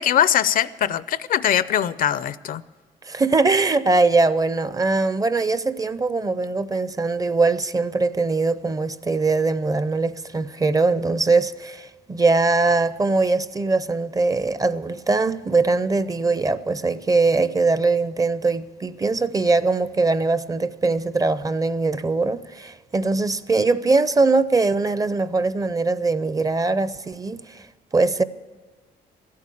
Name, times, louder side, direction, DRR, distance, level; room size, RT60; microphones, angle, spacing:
voice 1, 0.0-2.6, left 10 dB, 55° left, 0.4 m, -21 dB
voice 2, 3.0-27.7 27.9-28.2, right 3 dB, 20° right, 0.5 m, -21 dB
15.0 x 8.5 x 8.5 m
cardioid pair, 95°, 17 cm